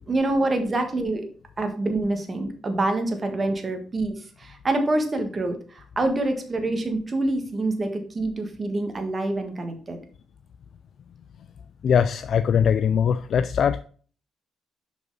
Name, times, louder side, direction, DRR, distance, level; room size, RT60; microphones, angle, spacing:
voice 1, 0.0-1.3 1.6-10.0, right 2 dB, 30° right, 5 dB, 1.5 m, -26 dB
voice 2, 11.8-13.8, left 7 dB, 60° left, 11 dB, 0.3 m, -21 dB
6.0 x 5.4 x 4.0 m, 0.43 s
cardioid pair, 90°, 0 cm